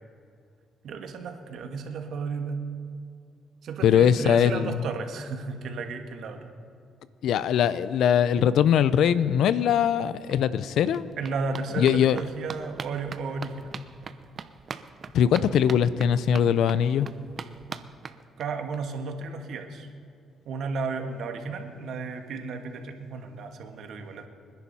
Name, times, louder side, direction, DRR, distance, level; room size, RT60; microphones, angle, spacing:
voice 1, 0.8-2.7 3.6-6.5 11.2-13.8 18.4-19.9 20.4-24.3, right 4 dB, 70° right, 5 dB, 1.7 m, -33 dB
voice 2, 3.8-4.8 7.2-11.1 11.8-12.2 15.1-17.1, left 9 dB, 75° left, 16 dB, 0.6 m, -21 dB
sound 1, 10.0-10.1 10.3-18.8 19.1-19.2 19.4-19.5 19.8-19.9, right 5 dB, 45° right, 0.8 m, -42 dB
25.5 x 10.5 x 4.3 m, 2.5 s
cardioid pair, 90°, 0 cm